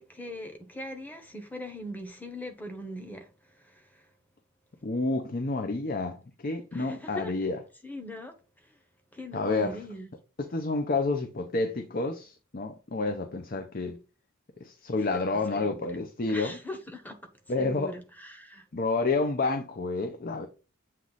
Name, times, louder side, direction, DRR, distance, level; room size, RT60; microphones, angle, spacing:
voice 1, 0.0-3.3 3.5-4.0 6.7-7.3 7.8-8.3 9.1-10.1 15.1-15.2 15.5-16.0 16.2-17.2 17.6-18.6, left 1 dB, 10° left, 1.0 m, -40 dB
voice 2, 4.8-6.2 6.4-7.6 9.3-9.8 10.4-14.0 14.6-16.6 17.5-17.9 18.7-20.5, left 3 dB, 45° left, 0.6 m, -29 dB
7.6 x 3.1 x 4.0 m
head